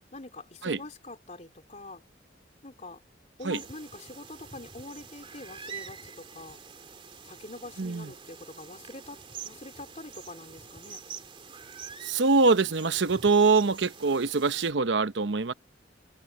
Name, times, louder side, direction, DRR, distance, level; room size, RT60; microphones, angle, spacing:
voice 1, 0.1-2.0 2.6-3.0 3.4-6.6 7.2-11.0, left 2 dB, 40° left, 3.9 m, -44 dB
sound 1, 3.5-14.7, right 6 dB, 30° right, 2.7 m, -46 dB
voice 2, 7.8-8.1 12.0-15.5, right 4 dB, 70° right, 0.8 m, -24 dB
head